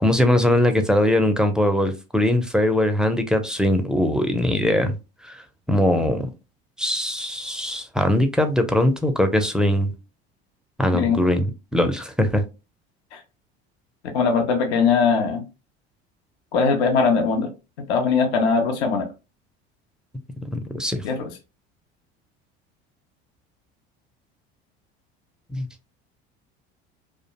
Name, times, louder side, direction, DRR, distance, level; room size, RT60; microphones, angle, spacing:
voice 1, 0.0-4.9 5.2-5.4 5.7-6.3 6.8-9.9 10.8-12.4 20.5-21.0 25.5-25.7, left 1 dB, ahead, 0.4 m, -21 dB
voice 2, 10.9-11.2 13.1-13.2 14.1-15.4 16.5-17.5 17.9-19.1 21.0-21.2, left 5 dB, 80° left, 0.6 m, -20 dB
2.4 x 2.1 x 2.8 m
hypercardioid pair, 70°, 32 cm